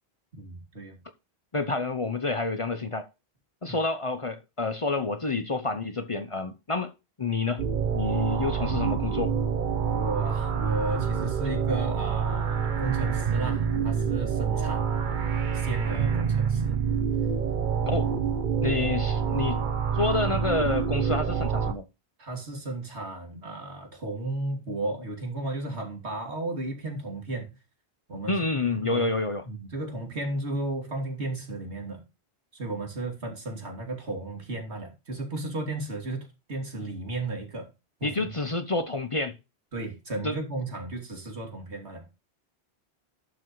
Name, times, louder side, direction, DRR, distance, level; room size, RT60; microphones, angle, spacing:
voice 1, 0.3-1.0 3.7-3.8 9.9-15.0 15.5-16.8 22.2-27.5 28.1-29.1 29.4-32.0 32.5-37.7 38.0-38.1 39.7-42.1, right 2 dB, 85° right, 3.1 m, -34 dB
voice 2, 1.5-3.1 3.6-6.9 7.2-7.6 7.9-9.3 17.9-18.1 18.6-19.6 19.9-21.8 28.3-29.4 38.0-39.4 40.2-40.4, left 3 dB, 35° left, 0.8 m, -28 dB
sound 1, 7.6-21.7, right 7 dB, 50° right, 1.0 m, -27 dB
11.5 x 6.9 x 3.1 m
omnidirectional pair, 1.1 m